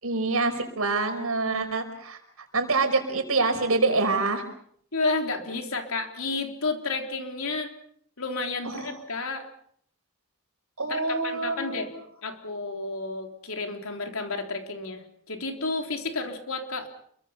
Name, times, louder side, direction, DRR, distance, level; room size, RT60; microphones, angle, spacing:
voice 1, 0.0-2.2 2.5-4.4 8.6-8.9 10.8-11.9, right 3 dB, 75° right, 6 dB, 5.4 m, -26 dB
voice 2, 4.9-7.7 8.2-9.5 10.9-11.9 12.2-16.9, left 3 dB, 75° left, 4 dB, 3.7 m, -31 dB
28.5 x 23.5 x 5.7 m, 0.64 s
head